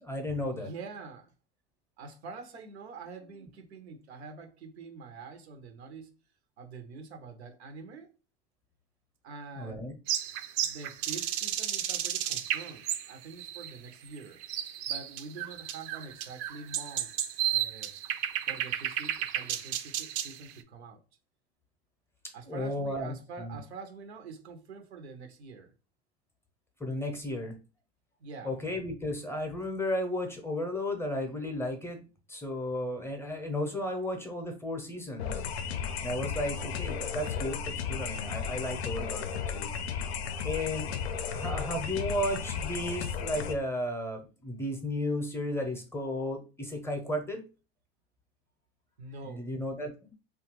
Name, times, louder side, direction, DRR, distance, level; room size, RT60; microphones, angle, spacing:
voice 1, 0.0-0.7 9.6-9.9 22.5-23.6 26.8-27.5 28.4-35.4 36.0-39.2 39.5-39.7 40.4-41.0 41.3-47.4 49.2-50.1, left 1 dB, 10° left, 0.6 m, -34 dB
voice 2, 0.5-1.3 2.0-6.1 6.6-8.1 9.2-9.9 10.6-14.4 14.9-17.1 17.5-17.9 18.5-21.0 22.3-25.7 28.2-28.6 49.0-49.5, right 4 dB, 90° right, 0.7 m, -45 dB
sound 1, 10.1-20.5, right 11 dB, 55° right, 0.4 m, -33 dB
sound 2, 35.2-43.5, left 6 dB, 90° left, 0.5 m, -34 dB
2.8 x 2.4 x 3.0 m
hypercardioid pair, 100°, 32 cm